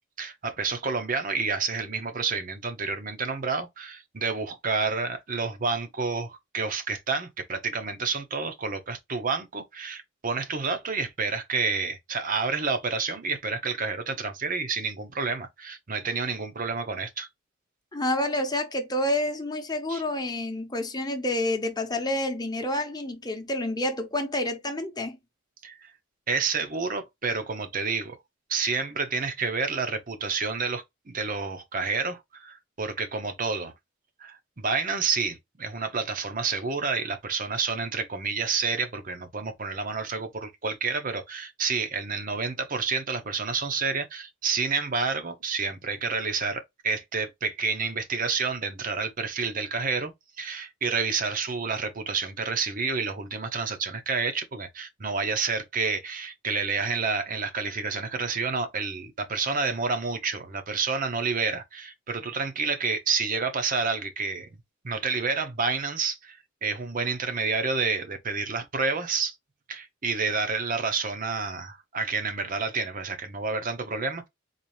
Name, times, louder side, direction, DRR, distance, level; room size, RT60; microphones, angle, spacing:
voice 1, 0.2-17.3 19.9-20.0 25.6-25.9 26.3-28.2 28.5-33.7 34.2-50.1 50.4-64.5 64.8-69.3 69.7-74.3, right 4 dB, 45° right, 0.8 m, -29 dB
voice 2, 17.9-25.2, left 1 dB, 20° left, 0.9 m, -28 dB
4.1 x 2.6 x 3.2 m
head